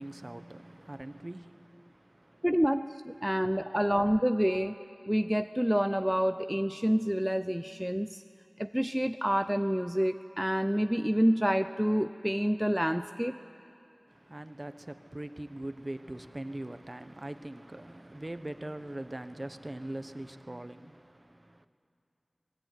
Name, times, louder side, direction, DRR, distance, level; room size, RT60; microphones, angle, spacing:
voice 1, 0.0-2.5 3.2-3.6 14.1-21.7, right 1 dB, 35° right, 1.1 m, -42 dB
voice 2, 2.4-4.8 5.1-8.2 8.6-13.4, equal, 5° right, 0.6 m, -28 dB
29.0 x 21.0 x 9.4 m
wide cardioid pair, 45°, 0 cm